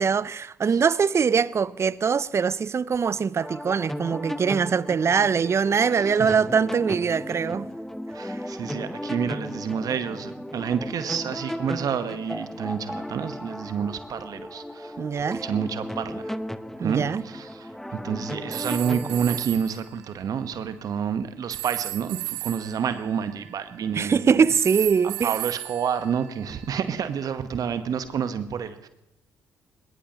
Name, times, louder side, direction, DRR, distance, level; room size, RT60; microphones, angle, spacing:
voice 1, 0.0-7.7 15.0-15.4 16.8-17.2 23.9-25.3, right 6 dB, 40° right, 0.5 m, -22 dB
sound 1, 3.3-19.5, left 1 dB, 5° left, 0.9 m, -35 dB
voice 2, 5.9-6.3 8.1-15.0 15.3-16.4 16.8-24.4 25.2-28.9, right 7 dB, 55° right, 1.1 m, -29 dB
sound 2, 18.5-19.8 21.5-24.0 24.5-26.8, right 19 dB, 80° right, 0.7 m, -35 dB
21.5 x 20.5 x 2.9 m
hypercardioid pair, 45°, 7 cm